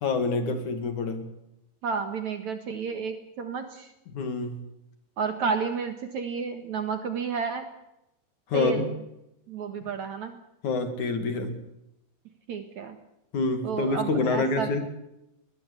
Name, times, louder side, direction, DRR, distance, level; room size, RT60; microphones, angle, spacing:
voice 1, 0.0-1.3 4.1-4.6 8.5-8.9 10.6-11.6 13.3-14.8, left 3 dB, 50° left, 8 dB, 3.4 m, -27 dB
voice 2, 1.8-3.9 5.2-7.7 8.5-8.9 9.5-10.4 12.5-13.0 13.6-14.7, right 5 dB, 55° right, 8 dB, 2.5 m, -31 dB
21.5 x 21.0 x 8.4 m, 0.87 s
omnidirectional pair, 4.6 m